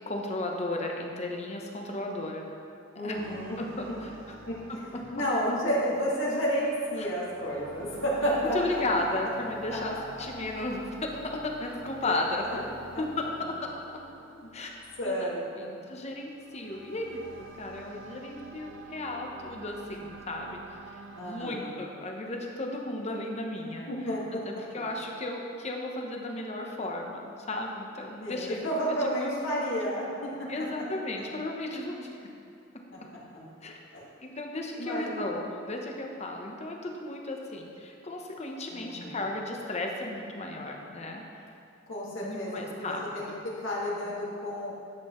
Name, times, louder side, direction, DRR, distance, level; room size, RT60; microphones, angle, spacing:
voice 1, 0.1-2.4 3.0-3.2 3.6-4.4 4.7-5.0 7.0-7.1 8.4-14.0 14.5-15.3 15.6-23.9 24.5-28.6 29.2-29.4 30.5-32.1 32.7-32.8 33.6-33.8 34.2-41.4 42.2-43.0, left 2 dB, 35° left, 1 dB, 0.9 m, -35 dB
voice 2, 2.9-3.6 4.5-4.6 5.1-9.1 9.7-10.0 12.0-12.1 12.4-12.6 14.3-14.5 15.0-15.7 20.3-20.4 21.2-21.8 23.9-24.4 24.8-24.9 28.2-30.5 32.9-33.0 33.3-33.5 33.9-34.1 34.8-35.1 38.7-39.2 41.9-44.7, equal, 80° left, -5 dB, 2.0 m, -31 dB
sound 1, 3.1-21.4, right 3 dB, 90° right, 0.7 m, -49 dB
10.5 x 7.7 x 3.1 m, 2.6 s
head